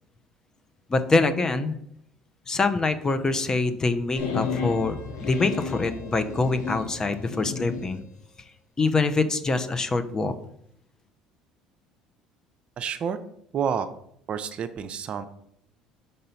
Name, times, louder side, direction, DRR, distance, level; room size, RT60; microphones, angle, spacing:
voice 1, 0.9-1.7 2.5-8.0 8.8-10.3, left 3 dB, 25° left, 10 dB, 0.7 m, -25 dB
sound 1, 4.2-7.9, left 6 dB, 85° left, 1.3 m, -33 dB
voice 2, 12.8-13.2 13.5-13.9 14.3-15.2, right 7 dB, 45° right, 11 dB, 0.5 m, -29 dB
5.4 x 3.9 x 5.6 m, 0.72 s
supercardioid pair, 85°, 2 cm